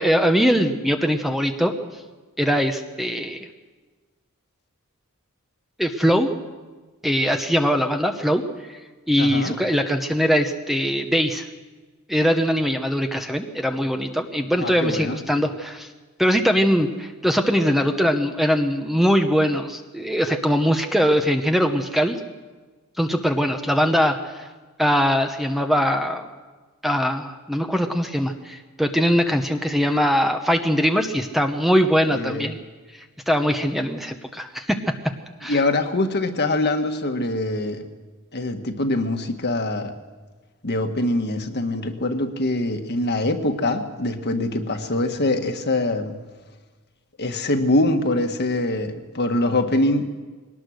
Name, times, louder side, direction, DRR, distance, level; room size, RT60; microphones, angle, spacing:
voice 1, 0.0-2.0 2.4-3.5 5.8-6.3 7.0-8.4 8.7-8.8 9.1-11.5 12.1-15.9 16.2-22.2 23.0-24.5 24.8-26.3 26.8-32.6 32.9-34.8 35.4-35.6, equal, ahead, 5 dB, 1.0 m, -21 dB
voice 2, 9.2-9.6 14.5-15.2 32.1-32.5 35.5-37.9 38.3-39.9 40.6-46.1 47.2-50.1, left 2 dB, 50° left, 6 dB, 1.6 m, -23 dB
22.0 x 18.5 x 6.5 m, 1.3 s
head